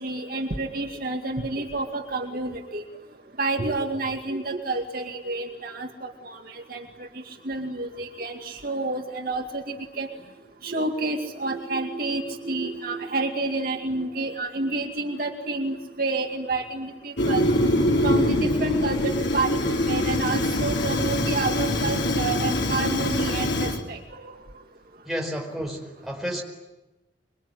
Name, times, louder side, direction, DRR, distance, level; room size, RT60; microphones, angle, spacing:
voice 1, 0.0-2.8 3.4-10.1 10.6-17.4 18.0-19.5 19.9-24.3, right 3 dB, 50° right, 3 dB, 2.3 m, -29 dB
Fire, 17.2-23.8, left 1 dB, 70° left, 3.6 m, -24 dB
voice 2, 25.1-26.4, equal, ahead, 0 dB, 4.8 m, -31 dB
25.5 x 23.5 x 9.9 m, 1.1 s
head